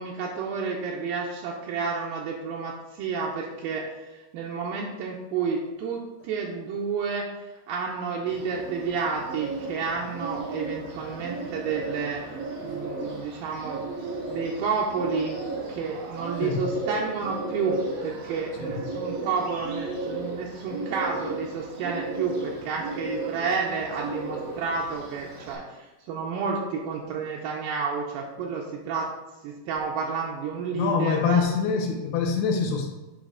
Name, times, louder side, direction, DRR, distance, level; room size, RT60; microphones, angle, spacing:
voice 1, 0.0-7.4 7.7-12.2 12.6-15.4 15.7-29.1 29.4-31.4, right 5 dB, 85° right, -2 dB, 2.1 m, -30 dB
Bird, 8.3-25.5, right 3 dB, 65° right, 1.5 m, -35 dB
voice 2, 30.7-32.9, left 6 dB, 80° left, 1 dB, 2.7 m, -25 dB
9.3 x 3.3 x 3.7 m, 1.1 s
omnidirectional pair, 4.6 m